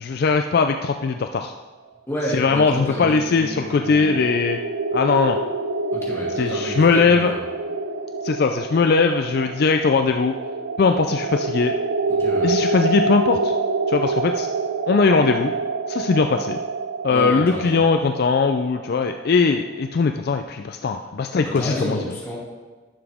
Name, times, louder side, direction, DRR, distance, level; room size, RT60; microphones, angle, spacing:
voice 1, 0.0-1.5 2.3-4.6 4.9-5.4 6.4-7.3 8.2-10.3 10.8-11.7 12.4-13.5 13.9-14.5 14.9-15.5 15.9-16.6 17.0-22.0, left 4 dB, 55° left, 6 dB, 0.4 m, -20 dB
voice 2, 2.1-4.2 5.9-7.4 12.1-12.5 17.1-17.8 21.4-22.4, equal, 15° left, -6 dB, 2.4 m, -30 dB
sound 1, 2.7-19.5, right 3 dB, 70° right, 0.5 m, -27 dB
10.5 x 6.9 x 3.6 m, 1.3 s
head